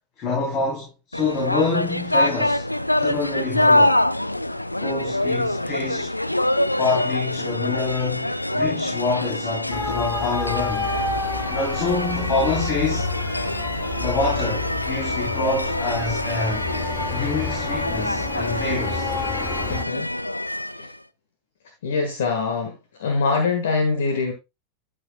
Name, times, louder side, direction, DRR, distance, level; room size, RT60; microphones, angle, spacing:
voice 1, 0.2-2.7 3.0-4.0 4.8-6.1 6.8-10.9 11.5-13.1 14.0-16.7 17.1-19.1, left 3 dB, 35° left, 3.4 m, -26 dB
sound 1, 1.1-21.0, left 1 dB, 85° left, 0.4 m, -25 dB
sound 2, 9.7-19.8, left 4 dB, 15° left, 1.0 m, -31 dB
voice 2, 19.7-20.1 20.8-20.9 21.8-22.7 23.0-24.3, left 4 dB, 60° left, 1.5 m, -23 dB
12.5 x 6.6 x 2.2 m
figure-of-eight pair, 90°, 0 cm